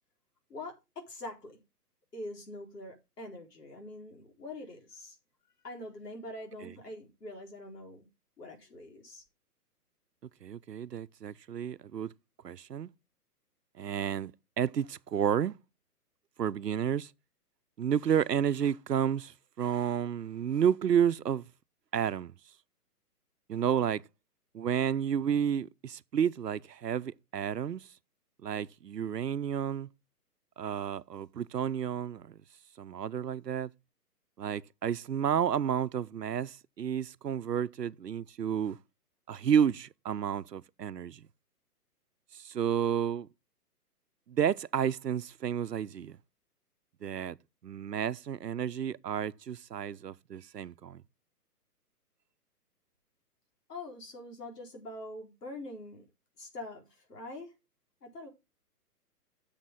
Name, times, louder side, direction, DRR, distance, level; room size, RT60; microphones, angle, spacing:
voice 1, 0.5-1.6 2.1-5.2 5.6-8.1 8.4-9.2 53.7-56.0 56.4-57.5 58.0-58.3, left 2 dB, 75° left, 4.5 m, -44 dB
voice 2, 10.4-12.1 12.4-12.9 13.8-14.3 14.6-15.6 16.4-17.1 17.8-21.5 21.9-22.3 23.5-24.0 24.5-27.9 28.4-29.9 30.6-32.4 32.8-33.7 34.4-38.8 39.3-41.3 42.3-43.3 44.3-46.2 47.0-47.4 47.6-51.0, right 8 dB, 90° right, 0.8 m, -31 dB
11.0 x 7.4 x 3.7 m
hypercardioid pair, 140°, 48 cm